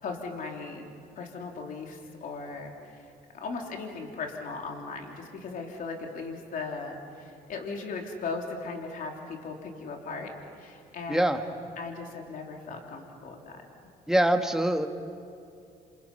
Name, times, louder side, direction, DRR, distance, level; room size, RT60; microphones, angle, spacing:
voice 1, 0.0-0.9 1.2-10.3 10.6-11.4 11.8-13.6, left 4 dB, 55° left, 1 dB, 3.6 m, -38 dB
voice 2, 11.1-11.4 14.1-14.9, right 1 dB, 5° right, 5 dB, 1.6 m, -24 dB
28.0 x 27.0 x 5.7 m, 2.4 s
cardioid pair, 110°, 17 cm